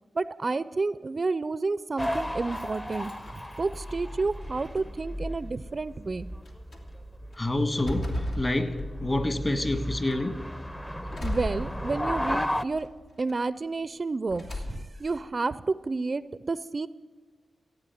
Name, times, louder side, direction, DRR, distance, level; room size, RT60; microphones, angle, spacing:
voice 1, 0.1-3.1 3.6-6.3 11.2-12.9 13.2-16.9, right 3 dB, 45° right, 16 dB, 0.4 m, -30 dB
sound 1, 2.0-3.9 4.4-5.1 5.9-6.0 6.4-6.8 7.3-9.3 9.7-10.2 11.1-12.3 12.7-13.3 14.3-15.1, left 1 dB, 80° left, 2.4 m, -37 dB
sound 2, 2.0-12.6, equal, 15° left, 0.7 m, -35 dB
voice 2, 7.4-10.4, left 1 dB, 35° left, 8 dB, 1.7 m, -28 dB
15.5 x 9.0 x 9.2 m, 1.4 s
cardioid pair, 50°, 0 cm